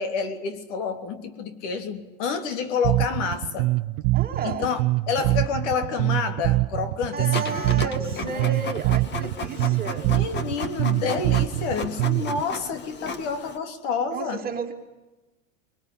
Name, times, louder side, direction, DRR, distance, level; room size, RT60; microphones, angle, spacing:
voice 1, 0.0-3.7 4.4-8.5 10.0-14.4, left 5 dB, 65° left, 8 dB, 3.3 m, -29 dB
Bass guitar, 2.8-12.4, right 19 dB, 55° right, 0.9 m, -24 dB
voice 2, 4.1-4.7 7.1-10.1 14.1-14.7, right 6 dB, 25° right, 3 dB, 2.9 m, -32 dB
Printer, 7.3-13.6, left 4 dB, 25° left, 1.9 m, -34 dB
22.0 x 20.0 x 9.9 m, 1.1 s
supercardioid pair, 135°, 39 cm